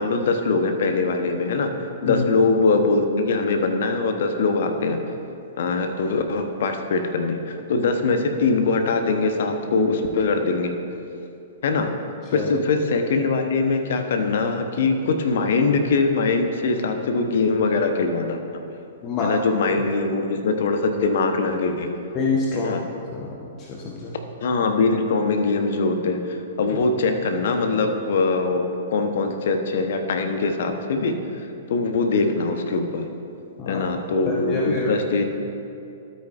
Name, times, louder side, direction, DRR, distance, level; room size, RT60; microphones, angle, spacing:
voice 1, 0.0-1.7 2.0-5.0 5.6-10.7 11.6-11.9 12.3-18.6 19.2-21.9 22.5-22.8 24.4-31.1 31.7-33.0 33.6-35.2, left 3 dB, 55° left, 6 dB, 0.8 m, -22 dB
voice 2, 19.0-19.4 22.1-22.7 23.1-24.1 33.6-33.9 34.3-34.9, left 3 dB, 30° left, -3 dB, 1.0 m, -26 dB
12.5 x 8.5 x 2.5 m, 2.7 s
figure-of-eight pair, 110°, 0 cm